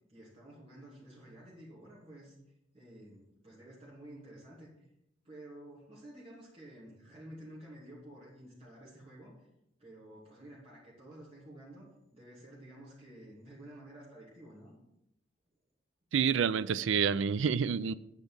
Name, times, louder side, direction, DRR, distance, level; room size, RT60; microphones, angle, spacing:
voice 1, 0.1-2.4 2.7-4.9 5.2-9.5 9.8-14.7, right 1 dB, 30° right, -7 dB, 2.9 m, -51 dB
voice 2, 16.1-17.9, right 6 dB, 75° right, 17 dB, 0.4 m, -28 dB
8.2 x 5.2 x 7.0 m, 0.86 s
head